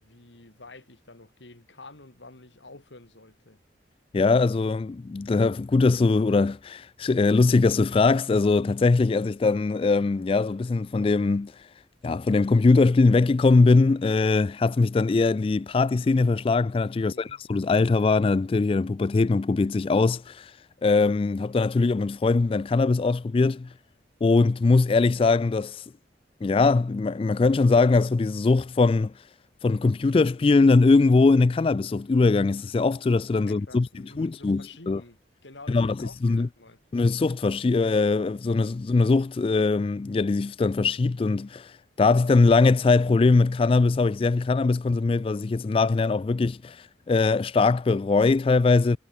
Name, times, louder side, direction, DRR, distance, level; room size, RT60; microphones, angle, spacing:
voice 1, 0.0-3.6 16.9-17.4 33.4-36.8, left 2 dB, 85° left, 3.1 m, -49 dB
voice 2, 4.1-11.5 12.0-20.5 20.8-23.7 24.2-25.8 26.4-29.1 29.6-33.9 34.2-35.0 35.7-36.5 36.9-41.7 42.0-49.0, left 3 dB, 30° left, 0.3 m, -21 dB
head